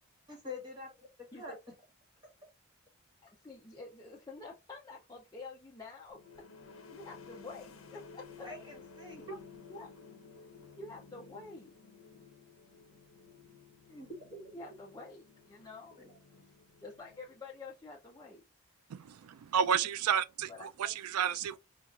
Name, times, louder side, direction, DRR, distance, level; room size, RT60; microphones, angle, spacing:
voice 1, 0.3-1.1 1.3-1.5 8.4-9.4 13.9-14.7 16.0-16.1, left 1 dB, 20° right, 1.3 m, -45 dB
voice 2, 3.2-6.2 6.7-8.5 9.7-9.9 10.7-11.7 14.5-16.0 16.4-16.5 16.8-18.4 20.5-20.9, left 3 dB, 15° left, 0.5 m, -48 dB
sound 1, 6.1-17.6, left 5 dB, 70° left, 0.8 m, -55 dB
voice 3, 18.9-20.5 20.8-21.6, right 8 dB, 85° right, 0.3 m, -31 dB
4.5 x 2.4 x 2.3 m
head